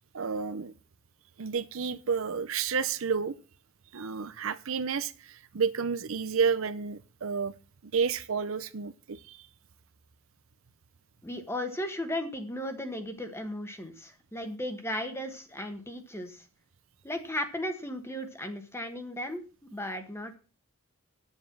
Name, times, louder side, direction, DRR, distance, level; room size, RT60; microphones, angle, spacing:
voice 1, 0.1-0.7 1.4-3.4 3.9-7.5 7.8-9.4, right 6 dB, 65° right, 0.6 m, -30 dB
voice 2, 11.2-16.4 17.0-20.4, left 1 dB, 10° left, 1.2 m, -36 dB
9.8 x 7.3 x 6.0 m
head